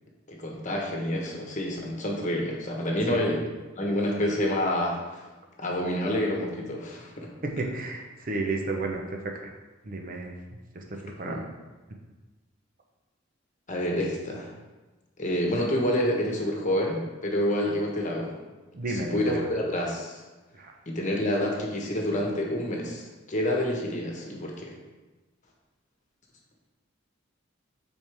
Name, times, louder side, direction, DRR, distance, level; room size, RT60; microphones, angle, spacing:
voice 1, 0.3-3.4 3.8-5.3 5.6-7.3 11.2-11.4 13.7-14.5 15.2-18.4 18.9-20.2 20.9-24.8, left 1 dB, 40° left, -1 dB, 1.2 m, -28 dB
voice 2, 7.4-9.5 9.8-10.3 10.7-11.5 18.7-19.5 20.5-20.7, right 2 dB, 45° right, 2 dB, 0.8 m, -32 dB
8.8 x 4.4 x 3.5 m, 1.2 s
head